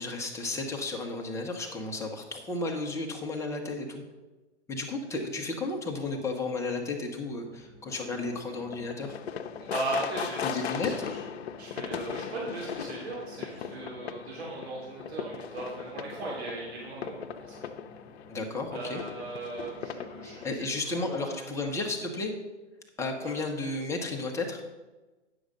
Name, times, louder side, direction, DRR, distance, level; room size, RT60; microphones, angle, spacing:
voice 1, 0.0-4.0 4.7-9.1 10.4-10.9 18.3-19.0 20.2-22.3 23.0-24.6, left 3 dB, 10° left, 1 dB, 0.9 m, -33 dB
sound 1, 7.3-21.1, equal, 30° right, 2.4 m, -55 dB
sound 2, 7.9-20.6, left 8 dB, 60° left, 0.8 m, -39 dB
voice 2, 9.6-11.2 11.6-17.7 18.7-21.7 23.1-23.4, right 2 dB, 65° right, -5 dB, 3.3 m, -38 dB
9.6 x 6.5 x 5.1 m, 1.2 s
hypercardioid pair, 135°, 35 cm